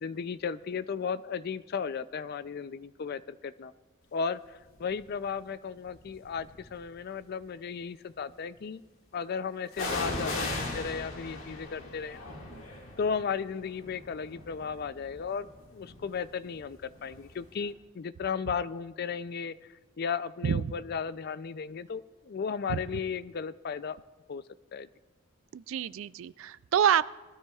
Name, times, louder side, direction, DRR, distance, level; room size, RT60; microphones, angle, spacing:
voice 1, 0.0-3.7 4.1-8.8 9.1-12.3 13.0-19.5 20.0-24.0 24.3-24.4 24.7-24.9, left 6 dB, 50° left, 15 dB, 0.4 m, -35 dB
sound 1, 4.8-5.1 5.9-6.8 9.7-17.4 17.6-17.7, left 2 dB, 80° left, 1.9 m, -39 dB
voice 2, 25.5-27.1, right 8 dB, 75° right, 18 dB, 0.3 m, -27 dB
21.0 x 13.0 x 2.4 m, 1.3 s
head